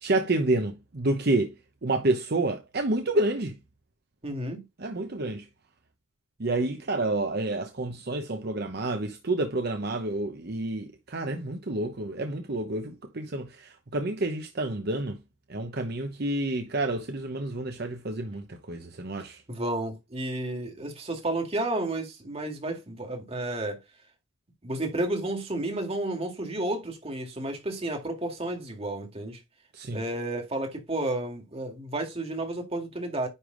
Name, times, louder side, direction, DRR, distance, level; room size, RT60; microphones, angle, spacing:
voice 1, 0.0-1.5 1.8-3.6 4.8-5.5 6.4-15.2 15.5-19.4 29.7-30.0, right 2 dB, 55° right, 0.9 m, -29 dB
voice 2, 4.2-4.6 19.5-23.8 24.6-29.4 29.9-33.3, right 1 dB, 30° right, 2.0 m, -31 dB
9.9 x 3.4 x 3.8 m
head